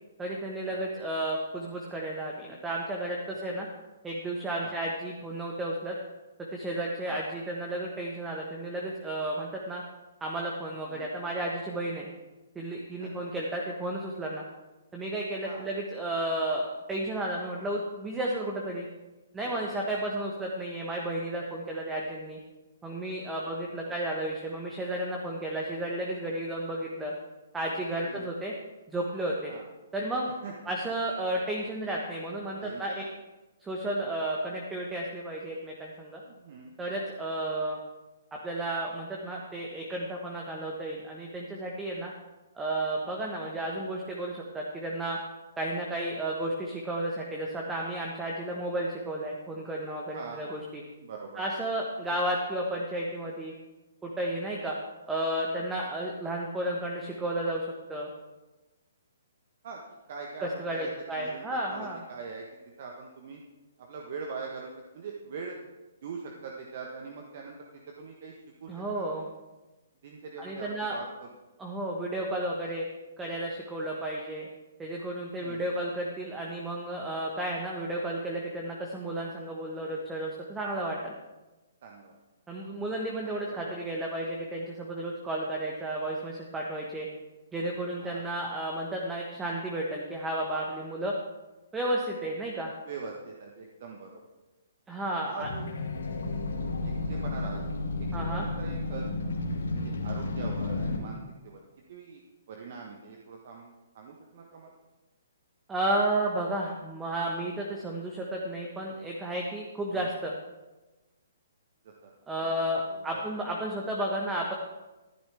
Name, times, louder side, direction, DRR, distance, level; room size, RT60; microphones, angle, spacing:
voice 1, 0.2-3.7 4.0-5.9 6.5-9.8 10.2-12.1 12.5-14.4 14.9-18.9 19.3-22.4 22.8-27.1 27.5-28.5 28.9-29.5 29.9-30.3 30.6-33.0 33.6-36.2 36.8-37.8 38.4-42.1 42.5-45.2 45.6-50.8 51.4-53.5 54.0-54.8 55.1-58.1 60.4-62.0 68.7-69.3 70.4-71.0 71.6-72.9 73.2-74.5 74.8-81.2 82.5-87.1 87.5-91.1 91.7-92.7 94.9-95.5 98.1-98.5 105.7-110.3 112.3-114.5, right 1 dB, 10° right, -1 dB, 1.4 m, -32 dB
voice 2, 13.0-13.3 15.4-15.7 19.7-20.1 23.4-23.5 23.8-24.0 28.0-28.3 29.5-29.7 30.4-30.7 32.6-33.0 36.3-36.7 50.1-50.4 51.0-51.4 59.6-59.8 60.1-62.4 62.8-63.4 63.8-65.6 66.0-67.6 67.9-69.2 70.0-71.1 75.4-75.6 81.8-82.2 83.2-83.6 88.0-88.2 92.8-94.2 95.2-95.7 97.1-97.6 98.2-99.1 99.7-101.6 101.9-102.2 102.5-104.7 109.9-110.1 111.8-112.1 112.4-112.5 112.9-113.2, right 5 dB, 45° right, 0 dB, 1.4 m, -43 dB
sound 1, 95.4-101.0, left 2 dB, 60° left, 2.2 m, -32 dB
14.0 x 11.5 x 3.6 m, 1.1 s
figure-of-eight pair, 125°, 0 cm